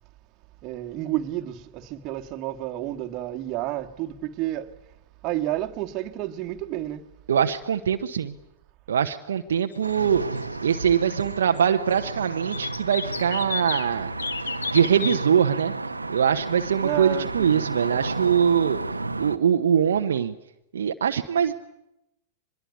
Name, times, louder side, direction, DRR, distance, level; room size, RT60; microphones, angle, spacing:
voice 1, 0.6-4.7 5.2-7.0 16.8-17.7, right 14 dB, 40° right, 1.8 m, -30 dB
voice 2, 7.3-8.3 8.9-14.1 14.7-15.8 16.1-18.8 19.2-20.3 20.7-21.5, right 8 dB, 70° right, 1.1 m, -23 dB
sound 1, 9.7-11.3 11.6-11.7 12.0-13.9 14.2-15.2, left 5 dB, 80° left, 1.3 m, -34 dB
sound 2, 9.8-19.4, right 3 dB, 90° right, 1.1 m, -32 dB
24.0 x 21.5 x 9.6 m
figure-of-eight pair, 100°, 0 cm